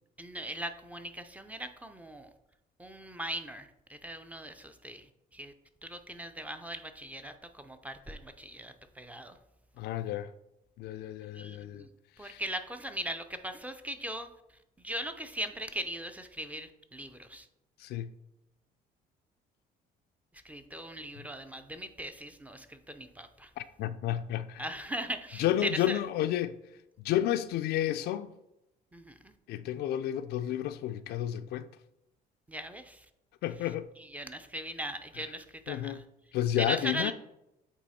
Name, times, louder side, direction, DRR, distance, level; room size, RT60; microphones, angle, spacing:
voice 1, 0.2-2.3 2.8-5.0 5.3-5.5 5.8-9.4 11.3-11.9 12.2-14.3 14.8-17.5 20.4-23.5 24.6-26.0 28.9-29.3 32.5-33.1 34.1-36.0 36.6-37.1, right 1 dB, 10° right, 0.5 m, -39 dB
voice 2, 9.8-10.3 10.8-11.9 12.2-12.4 17.8-18.1 21.2-21.3 23.6-24.7 25.4-26.6 27.0-28.3 29.5-31.7 33.4-33.9 35.2-35.3 35.7-36.0 36.3-37.1, left 12 dB, 70° left, 0.4 m, -31 dB
8.2 x 3.0 x 4.2 m
cardioid pair, 110°, 17 cm